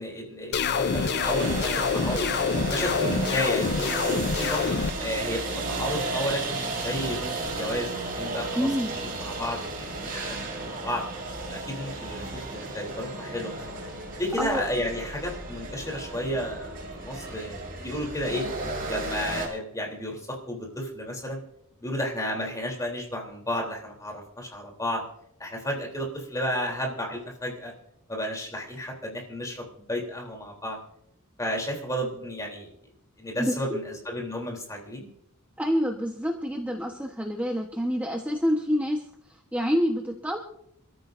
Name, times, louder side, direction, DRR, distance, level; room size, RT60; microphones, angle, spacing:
voice 1, 0.0-2.3 2.7-4.6 5.0-8.7 9.2-11.0 11.5-13.8 14.2-18.5 18.9-21.4 21.8-25.0 25.4-27.7 28.1-30.8 31.4-32.7 33.2-35.1, equal, 15° left, 0 dB, 3.4 m, -32 dB
sound 1, 0.5-4.9, left 5 dB, 50° left, 0.6 m, -26 dB
sound 2, 0.6-19.5, right 2 dB, 45° right, 5.3 m, -33 dB
voice 2, 8.6-8.9 14.4-14.6 33.4-33.8 35.6-39.0 39.3-40.4, equal, 5° right, 1 dB, 1.1 m, -27 dB
27.0 x 14.0 x 2.6 m, 0.73 s
head